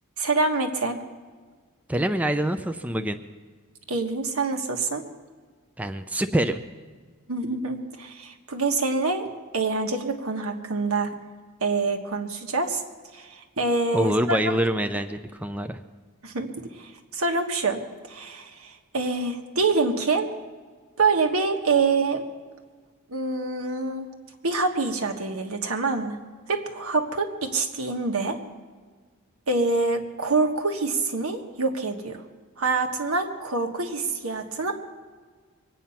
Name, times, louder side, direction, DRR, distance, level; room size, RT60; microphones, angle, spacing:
voice 1, 0.2-1.0 3.9-5.0 7.3-11.1 11.6-12.8 13.1-14.4 16.2-20.3 21.0-22.2 23.1-24.1 24.4-26.2 26.5-28.4 29.5-32.2 32.6-34.8, right 3 dB, 75° right, 4 dB, 1.5 m, -26 dB
voice 2, 1.9-3.2 5.8-6.6 13.9-15.8, right 1 dB, 5° right, 7 dB, 0.5 m, -25 dB
23.5 x 9.2 x 5.7 m, 1.5 s
head